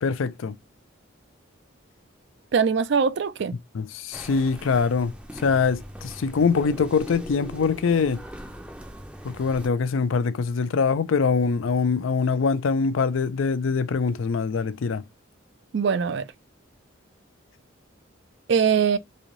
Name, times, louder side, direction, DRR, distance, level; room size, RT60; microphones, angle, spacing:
voice 1, 0.0-0.6 3.7-8.2 9.2-15.0, left 5 dB, 75° left, 0.4 m, -23 dB
voice 2, 2.5-3.6 15.7-16.3 18.5-19.0, right 6 dB, 60° right, 0.4 m, -22 dB
sound 1, 4.1-9.7, equal, 5° right, 0.5 m, -40 dB
3.1 x 2.7 x 3.8 m
head